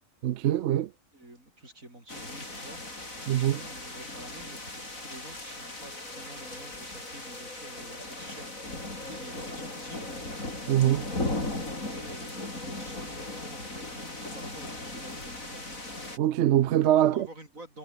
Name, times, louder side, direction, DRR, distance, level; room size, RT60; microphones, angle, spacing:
voice 1, 0.2-0.9 3.3-3.6 10.7-11.1 16.2-17.3, right 12 dB, 65° right, 0.8 m, -23 dB
voice 2, 1.1-2.8 3.4-8.5 9.0-10.1 11.9-15.7 17.1-17.8, right 1 dB, 85° right, 8.4 m, -48 dB
sound 1, 2.1-16.2, left 2 dB, 85° left, 7.1 m, -38 dB
omnidirectional pair, 1.4 m